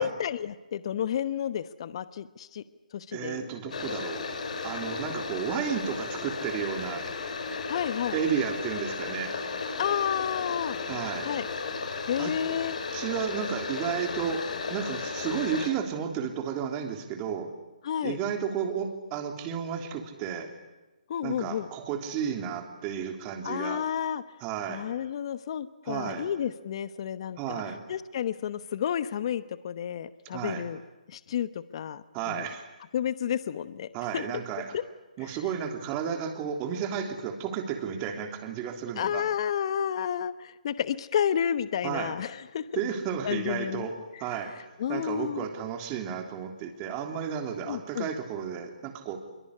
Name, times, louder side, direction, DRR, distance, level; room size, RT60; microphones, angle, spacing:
voice 1, 0.0-2.6 2.9-3.5 7.7-8.2 9.8-10.8 11.2-11.5 12.1-12.8 17.8-18.2 21.1-21.7 23.4-24.2 24.7-27.6 27.9-30.8 31.1-32.4 32.9-33.9 34.1-34.2 34.7-34.8 39.0-42.8 43.2-43.9 44.8-45.4 47.7-48.1, left 9 dB, 40° left, 14 dB, 1.0 m, -31 dB
voice 2, 3.1-4.3 4.6-7.1 8.1-9.4 10.9-11.3 12.2-12.4 12.9-17.5 18.0-20.5 21.2-23.8 24.4-24.8 25.8-26.3 27.4-27.8 30.3-30.6 32.1-32.7 33.9-34.8 35.2-39.2 41.8-42.2 42.7-44.6 44.9-49.2, right 7 dB, 20° right, 5 dB, 3.3 m, -32 dB
sound 1, 3.7-15.7, left 4 dB, 55° left, 5.8 m, -34 dB
25.5 x 23.5 x 9.9 m, 1.1 s
hypercardioid pair, 155°, 4 cm